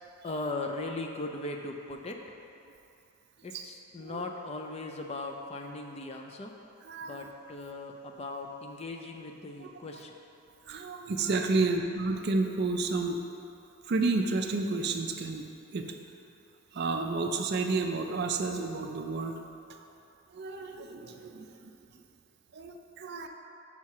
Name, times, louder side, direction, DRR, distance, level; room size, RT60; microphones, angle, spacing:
voice 1, 0.2-2.2 3.4-6.5 7.0-10.1, left 2 dB, 30° left, 3 dB, 0.4 m, -38 dB
voice 2, 6.8-7.2 9.6-9.7 10.7-13.2 13.9-15.5 15.7-15.9 16.7-19.4 20.3-21.5 22.5-23.3, right 3 dB, 45° right, 4 dB, 0.4 m, -30 dB
5.6 x 4.5 x 5.9 m, 2.7 s
head